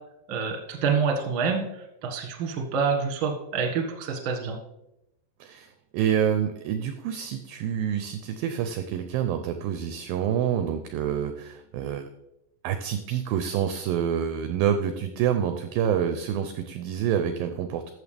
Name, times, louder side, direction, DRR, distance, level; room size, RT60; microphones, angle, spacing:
voice 1, 0.3-4.6, right 5 dB, 50° right, 1 dB, 1.6 m, -27 dB
voice 2, 5.4-12.0 12.6-17.9, right 9 dB, 80° right, 8 dB, 2.1 m, -27 dB
13.0 x 7.3 x 3.4 m, 0.85 s
omnidirectional pair, 4.6 m